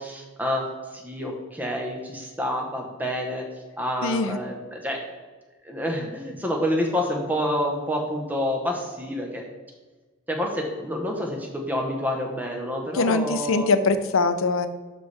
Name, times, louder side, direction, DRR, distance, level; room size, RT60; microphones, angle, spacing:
voice 1, 0.0-3.4 3.8-5.0 5.6-9.4 10.3-13.7, equal, 10° right, 1 dB, 1.0 m, -28 dB
voice 2, 4.0-4.4 12.9-14.7, left 3 dB, 80° left, 10 dB, 0.6 m, -22 dB
11.5 x 4.2 x 3.4 m, 1.3 s
head